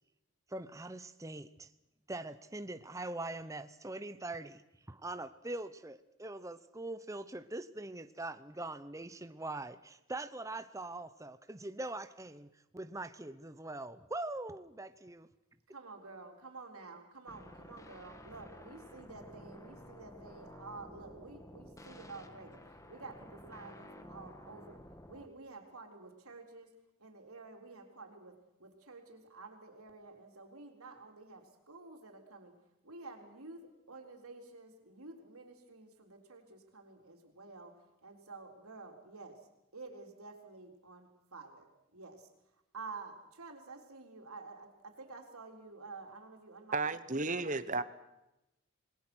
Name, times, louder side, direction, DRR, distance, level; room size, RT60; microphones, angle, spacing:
voice 1, 0.5-1.7 2.1-4.6 4.9-15.3, right 2 dB, 15° right, 0.8 m, -42 dB
voice 2, 15.7-24.8 25.1-26.7 27.0-32.6 32.8-39.5 39.7-42.3 42.7-46.8 47.5-47.8, right 3 dB, 85° right, 4.1 m, -50 dB
sound 1, 17.3-25.3, left 1 dB, 15° left, 1.5 m, -53 dB
voice 3, 46.7-47.8, right 3 dB, 35° right, 1.1 m, -33 dB
28.0 x 21.0 x 6.3 m
head